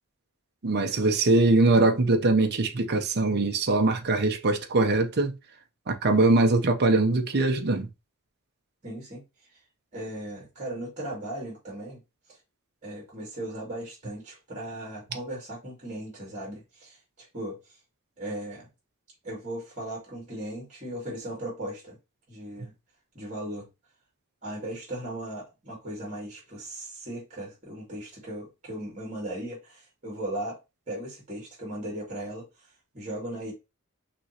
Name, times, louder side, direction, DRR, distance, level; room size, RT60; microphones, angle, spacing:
voice 1, 0.6-5.4 5.9-7.9, right 2 dB, 50° right, 0.8 m, -22 dB
voice 2, 8.8-9.2 9.9-12.0 12.8-17.6 18.2-18.7 19.2-22.0 22.3-22.7 23.1-23.7 24.4-30.6 30.9-32.5 32.9-33.5, right 1 dB, 35° right, 2.6 m, -37 dB
6.0 x 3.0 x 2.9 m
head